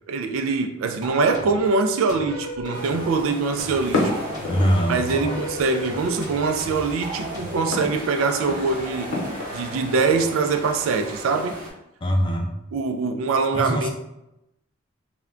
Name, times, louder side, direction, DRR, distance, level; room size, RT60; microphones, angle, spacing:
voice 1, 0.1-4.1 4.9-9.1 9.5-11.6 12.7-13.9, right 4 dB, 90° right, 0.3 m, -23 dB
sound 1, 1.0-1.7 2.1-3.1 3.6-4.7 5.1-7.7, equal, 20° right, 0.9 m, -35 dB
sound 2, 2.7-11.7, equal, 40° right, 0.6 m, -37 dB
sound 3, 3.6-10.1, left 2 dB, 85° left, 0.7 m, -32 dB
voice 2, 4.5-5.5 12.0-12.5 13.5-13.9, equal, 25° left, 0.4 m, -23 dB
2.2 x 2.2 x 3.6 m
head